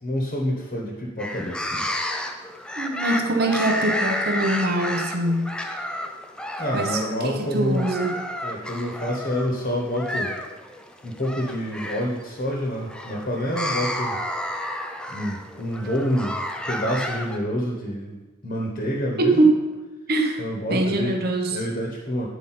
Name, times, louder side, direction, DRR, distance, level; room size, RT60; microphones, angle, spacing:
voice 1, 0.0-1.9 6.6-7.9 8.4-10.3 11.0-14.2 15.1-19.4 20.4-21.2 21.5-22.3, equal, 40° left, -1 dB, 1.1 m, -27 dB
sound 1, 1.2-17.4, left 1 dB, 5° left, 0.4 m, -31 dB
voice 2, 2.8-5.5 6.7-8.2 19.2-19.5 20.1-20.4 20.7-21.6, right 2 dB, 50° right, 4 dB, 0.8 m, -23 dB
9.1 x 4.9 x 4.3 m, 1.2 s
head